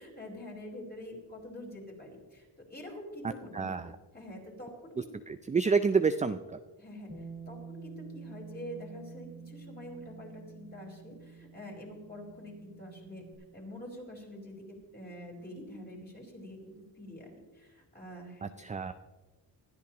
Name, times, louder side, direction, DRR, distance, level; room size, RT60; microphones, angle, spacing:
voice 1, 0.0-3.8 4.1-5.1 6.8-13.2 13.5-18.5, left 1 dB, 20° left, -2 dB, 5.0 m, -46 dB
voice 2, 3.5-3.9 5.3-6.4 18.6-18.9, right 5 dB, 15° right, 10 dB, 0.4 m, -28 dB
Bass guitar, 7.1-13.3, right 6 dB, 40° left, 4.7 m, -48 dB
20.5 x 13.5 x 3.1 m, 1.2 s
cardioid pair, 90°, 45 cm